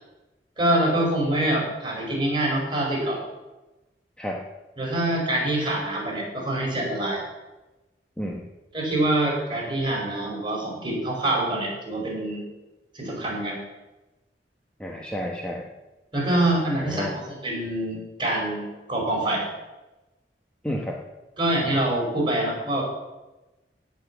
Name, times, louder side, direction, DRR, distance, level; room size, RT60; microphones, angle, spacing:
voice 1, 0.6-3.2 4.8-7.2 8.7-12.4 12.9-13.6 16.1-19.4 21.4-22.8, right 1 dB, 30° right, -2 dB, 5.0 m, -25 dB
voice 2, 14.8-15.6 16.8-17.1 20.6-21.0, left 1 dB, 5° left, -2 dB, 1.2 m, -31 dB
16.5 x 5.9 x 8.2 m, 1.1 s
head